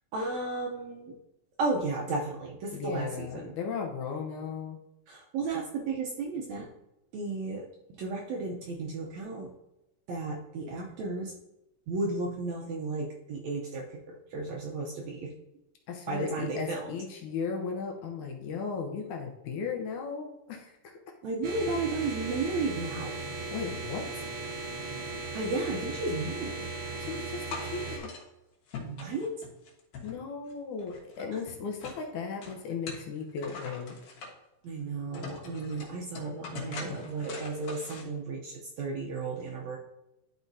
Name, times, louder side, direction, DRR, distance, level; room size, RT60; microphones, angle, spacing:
voice 1, 0.1-1.1 1.6-3.5 5.1-6.7 7.1-9.5 10.1-11.3 11.9-15.3 16.1-16.9 21.2-23.2 25.3-26.6 28.8-29.3 34.6-39.8, right 3 dB, 75° right, -1 dB, 1.7 m, -34 dB
voice 2, 2.7-4.8 15.9-21.0 23.5-24.3 27.0-28.1 30.0-34.0, left 5 dB, 70° left, 2 dB, 2.1 m, -36 dB
sound 1, 21.4-28.0, right 3 dB, 50° right, 1.5 m, -37 dB
sound 2, 27.5-28.2 28.7-30.5 30.8-32.0 32.4-34.3 34.8-34.9 35.1-38.0, left 4 dB, 90° left, 3.2 m, -43 dB
12.0 x 4.8 x 2.7 m, 0.91 s
omnidirectional pair, 3.9 m